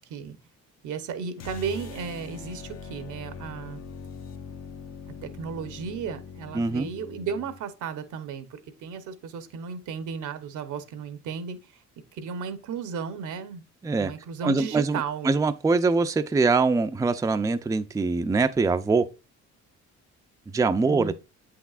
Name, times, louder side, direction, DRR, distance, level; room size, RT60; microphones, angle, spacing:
voice 1, 0.8-3.8 5.2-11.6 12.1-13.6 14.0-15.4 20.8-21.1, right 6 dB, 80° right, 0.9 m, -34 dB
sound 1, 1.4-7.6, left 5 dB, 60° left, 0.8 m, -42 dB
voice 2, 6.5-6.9 13.8-14.1 14.4-19.1 20.5-21.1, right 4 dB, 10° right, 0.4 m, -23 dB
7.9 x 5.9 x 2.4 m
cardioid pair, 90°, 30 cm